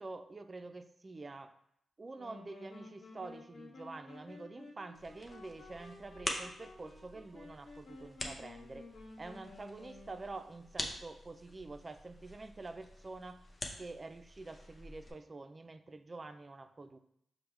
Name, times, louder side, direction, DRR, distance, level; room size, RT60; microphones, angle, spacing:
voice 1, 0.0-1.5 2.0-13.4 13.8-17.0, right 3 dB, 35° right, 10 dB, 0.3 m, -47 dB
sound 1, 2.1-10.6, left 2 dB, 60° left, 0.8 m, -53 dB
sound 2, 4.9-15.1, left 1 dB, 30° left, 0.7 m, -46 dB
5.2 x 2.1 x 4.5 m, 0.74 s
cardioid pair, 70°, 0 cm